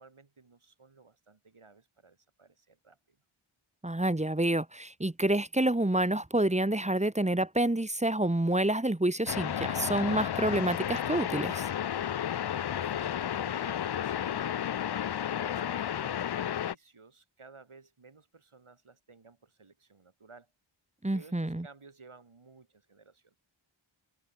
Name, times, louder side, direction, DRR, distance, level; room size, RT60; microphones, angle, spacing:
voice 1, 0.0-3.2 12.7-14.7 15.2-20.5 21.1-23.4, right 4 dB, 85° right, 7.6 m, -55 dB
voice 2, 3.8-11.7 21.0-21.7, right 1 dB, 15° right, 1.3 m, -28 dB
sound 1, 9.3-16.7, left 9 dB, 55° left, 0.5 m, -32 dB
wide cardioid pair, 50°, 49 cm